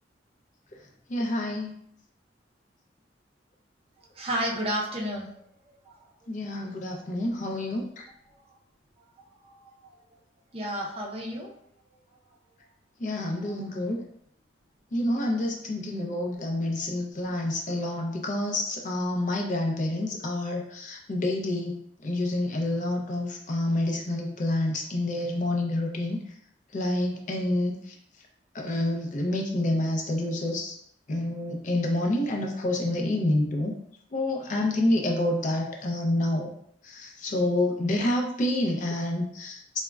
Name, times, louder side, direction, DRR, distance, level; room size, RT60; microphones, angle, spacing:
voice 1, 1.1-1.7 6.3-8.0 13.0-14.0 14.9-21.7 22.0-26.2 26.7-27.8 28.5-30.7 31.1-33.7 34.1-36.5 36.8-39.8, left 1 dB, 45° left, 1 dB, 0.5 m, -28 dB
voice 2, 4.2-5.3 9.5-9.6 9.8-9.9 10.5-11.5, equal, 35° right, -2 dB, 0.5 m, -31 dB
3.4 x 2.1 x 2.2 m, 0.70 s
head